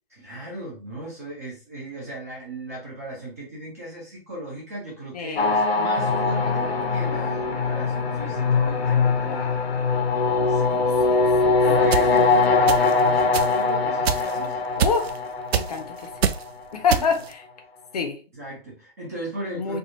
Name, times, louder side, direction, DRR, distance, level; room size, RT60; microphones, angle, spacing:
voice 1, 0.1-9.5 10.5-10.9 11.7-14.6 18.3-19.8, right 1 dB, 15° right, 0.4 m, -37 dB
voice 2, 5.1-5.7 6.4-6.7 9.2-9.7 10.7-11.6 14.8-15.1 15.5-16.1 16.7-17.4 17.9-18.2 19.5-19.8, left 5 dB, 40° left, 0.5 m, -28 dB
sound 1, 5.4-16.5, left 4 dB, 75° left, 0.7 m, -22 dB
sound 2, 11.9-12.0 12.7-13.0 13.3-13.5 14.0-14.4 14.8-15.2 15.5-15.8 16.2-16.4 16.9-17.3, right 7 dB, 75° right, 0.5 m, -24 dB
3.4 x 2.2 x 2.6 m
hypercardioid pair, 145°, 31 cm